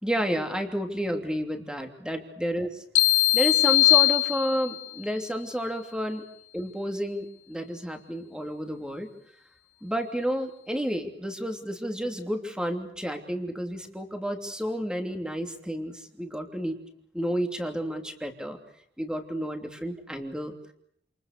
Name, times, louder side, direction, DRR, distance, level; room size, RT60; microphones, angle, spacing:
voice 1, 0.0-2.7 3.3-6.2 6.5-9.1 9.8-16.8 17.1-18.6 19.0-20.5, equal, 5° right, 4 dB, 3.0 m, -31 dB
sound 1, 3.0-4.9, left 19 dB, 70° left, 1.1 m, -20 dB
28.5 x 28.0 x 6.8 m, 0.69 s
head